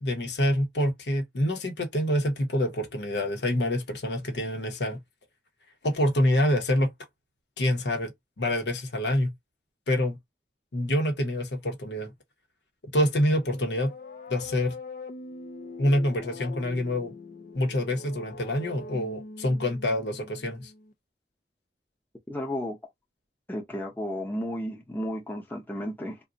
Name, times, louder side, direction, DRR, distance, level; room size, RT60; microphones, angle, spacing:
voice 1, 0.0-5.0 5.8-6.9 7.6-8.1 8.4-9.3 9.9-10.2 10.7-12.1 12.9-13.9 14.3-14.7 15.8-17.1 17.5-20.7, left 1 dB, 80° left, 0.9 m, -26 dB
sound 1, 13.2-20.9, left 3 dB, 50° left, 0.4 m, -43 dB
voice 2, 22.3-22.8 23.5-26.2, equal, 10° left, 0.7 m, -33 dB
2.4 x 2.3 x 3.8 m
head